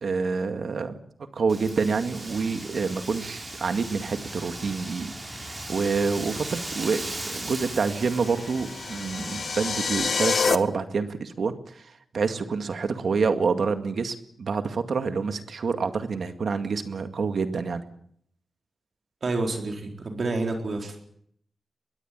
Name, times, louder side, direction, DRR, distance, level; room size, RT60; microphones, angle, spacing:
voice 1, 0.0-1.0 1.3-17.8, right 5 dB, 65° right, 8 dB, 2.1 m, -27 dB
Wind, 1.5-9.9, right 1 dB, 20° right, 5.7 m, -38 dB
sound 1, 8.0-10.5, left 5 dB, 55° left, 1.1 m, -27 dB
voice 2, 19.2-21.0, right 2 dB, 50° right, 3 dB, 4.1 m, -29 dB
22.0 x 16.5 x 9.5 m, 0.68 s
wide cardioid pair, 170°, 0 cm